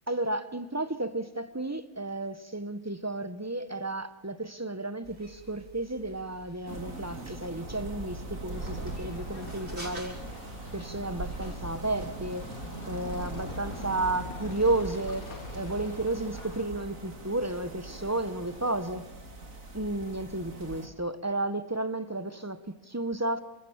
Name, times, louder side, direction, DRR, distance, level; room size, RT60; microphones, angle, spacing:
voice 1, 0.1-10.2 10.7-12.5 12.9-15.3 15.5-19.1 19.7-23.4, right 2 dB, 10° right, 1.0 m, -32 dB
sound 1, 5.0-10.1, right 2 dB, 45° right, 6.4 m, -49 dB
sound 2, 6.7-20.9, right 1 dB, 60° right, 3.2 m, -40 dB
sound 3, 8.5-16.7, left 4 dB, 70° left, 2.6 m, -48 dB
30.0 x 27.0 x 7.4 m
omnidirectional pair, 1.6 m